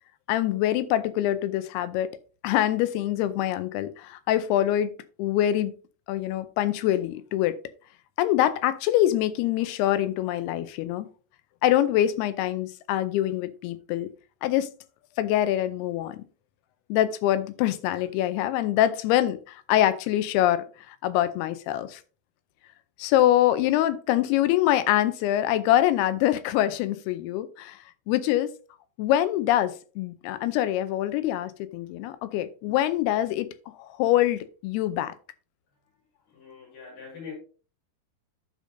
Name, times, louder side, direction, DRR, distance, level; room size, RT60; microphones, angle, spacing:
voice 1, 0.3-2.1 2.4-4.9 5.2-5.7 6.1-7.6 8.2-11.1 11.6-14.1 14.4-14.7 15.2-16.2 16.9-22.0 23.0-27.8 28.1-28.5 29.0-33.5 33.8-35.1, left 13 dB, 90° left, 2.7 m, -24 dB
voice 2, 36.3-37.4, left 6 dB, 50° left, 4.0 m, -42 dB
12.5 x 5.2 x 2.6 m
omnidirectional pair, 4.5 m